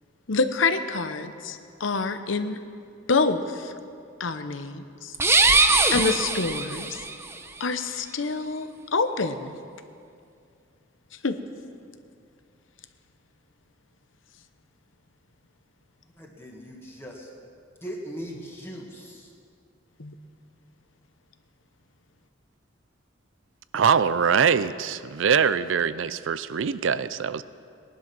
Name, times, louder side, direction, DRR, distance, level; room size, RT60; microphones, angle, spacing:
voice 1, 0.3-2.6 3.1-3.7 4.2-5.1 5.9-7.0 7.6-9.6 11.2-11.4 20.0-20.1, left 4 dB, 75° left, 9 dB, 0.9 m, -27 dB
sound 1, 5.1-7.1, right 3 dB, 15° right, 0.7 m, -21 dB
voice 2, 16.1-17.3 17.8-19.3, equal, 10° left, -2 dB, 1.8 m, -39 dB
voice 3, 23.7-27.4, right 6 dB, 75° right, 15 dB, 0.5 m, -23 dB
18.5 x 11.5 x 6.1 m, 2.4 s
head